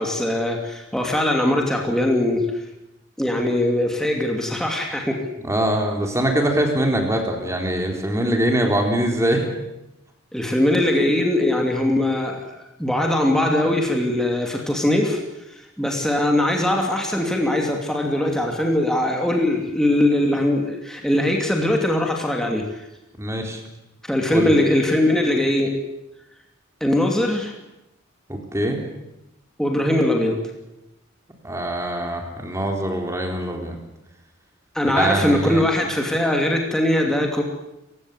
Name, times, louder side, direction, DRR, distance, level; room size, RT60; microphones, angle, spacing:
voice 1, 0.0-2.6 3.2-5.2 10.3-15.2 15.6-22.9 24.1-25.8 26.8-27.5 29.6-30.4 34.7-37.4, left 1 dB, ahead, 1 dB, 2.7 m, -21 dB
voice 2, 5.4-9.4 23.2-23.6 24.3-24.5 28.3-28.8 31.4-33.8 35.0-35.6, right 1 dB, 15° right, 2 dB, 3.9 m, -23 dB
29.5 x 16.0 x 8.1 m, 0.91 s
head